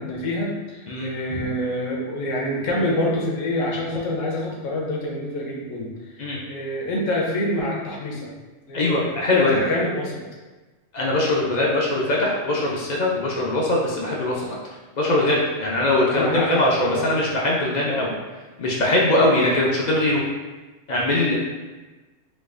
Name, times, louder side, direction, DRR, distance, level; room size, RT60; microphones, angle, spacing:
voice 1, 0.0-5.9 6.3-8.3 8.7-10.2 16.1-17.2 17.8-18.1 19.0-19.2, left 1 dB, 80° left, -2 dB, 1.1 m, -26 dB
voice 2, 0.9-1.4 6.2-6.4 8.7-9.6 10.9-14.5 15.0-18.1 18.6-20.2 20.9-21.3, left 1 dB, 60° left, -4 dB, 0.4 m, -21 dB
4.1 x 2.4 x 2.4 m, 1.2 s
omnidirectional pair, 1.3 m